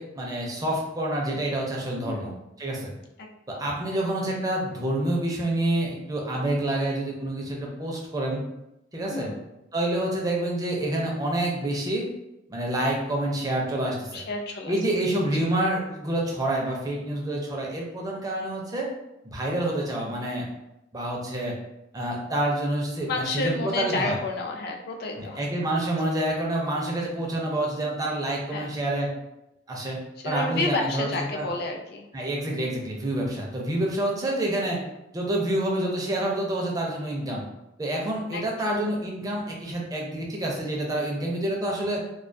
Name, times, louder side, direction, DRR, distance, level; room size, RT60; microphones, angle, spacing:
voice 1, 0.0-2.3 2.6-2.9 3.5-8.4 8.9-9.3 9.7-12.1 12.5-14.2 14.7-18.9 19.2-20.5 20.9-21.6 21.9-24.2 25.2-29.1 29.7-30.0 30.2-31.5 32.1-34.8 35.1-37.4 37.8-42.0, right 1 dB, 20° right, -2 dB, 0.4 m, -28 dB
voice 2, 2.0-2.4 3.2-3.7 9.1-9.5 14.1-14.8 15.4-15.5 23.1-25.4 28.5-28.7 30.2-32.1 38.3-38.9, left 3 dB, 55° left, 2 dB, 0.4 m, -31 dB
2.2 x 2.2 x 2.5 m, 0.89 s
head